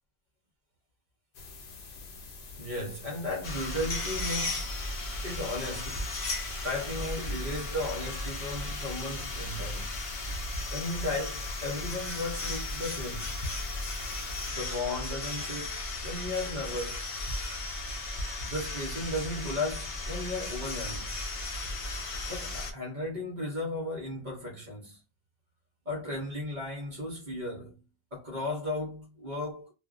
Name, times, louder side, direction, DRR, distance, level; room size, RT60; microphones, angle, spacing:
sound 1, 1.3-14.5, left 4 dB, 85° left, 0.9 m, -47 dB
voice 1, 2.6-6.1 6.6-10.0 10.7-13.4 14.5-17.5 18.4-21.2 22.3-25.0 25.8-27.8 28.1-29.7, left 1 dB, 50° right, 1.0 m, -35 dB
sound 2, 3.4-22.7, left 2 dB, 45° left, 0.5 m, -35 dB
2.4 x 2.1 x 2.4 m
omnidirectional pair, 1.0 m